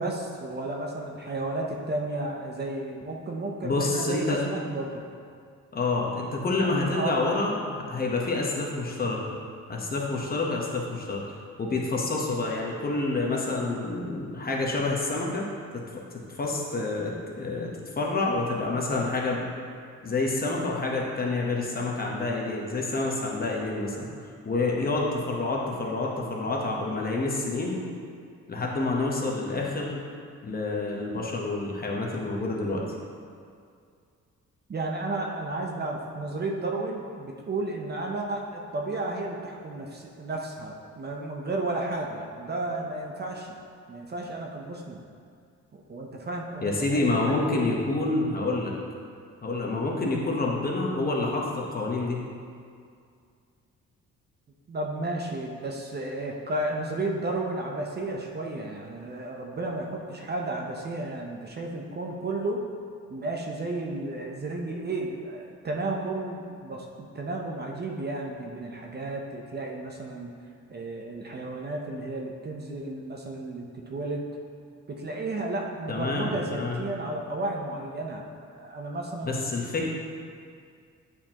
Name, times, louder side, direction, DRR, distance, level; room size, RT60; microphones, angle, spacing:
voice 1, 0.0-5.0 6.6-7.2 34.7-43.5 43.9-45.0 45.7-47.6 54.7-62.6 63.1-70.3 70.7-74.3 74.9-78.2 78.5-79.5 79.8-79.9, right 2 dB, 35° right, 0 dB, 0.7 m, -33 dB
voice 2, 3.6-4.4 5.7-9.2 9.7-11.2 11.6-15.5 15.7-15.8 16.4-17.7 18.0-19.4 20.0-24.1 24.4-27.8 28.5-30.0 30.4-32.8 46.6-48.7 49.4-52.2 75.9-76.8 79.2-79.9, left 3 dB, 30° left, -2 dB, 1.1 m, -28 dB
8.3 x 4.4 x 2.9 m, 2.3 s
cardioid pair, 90°, 30 cm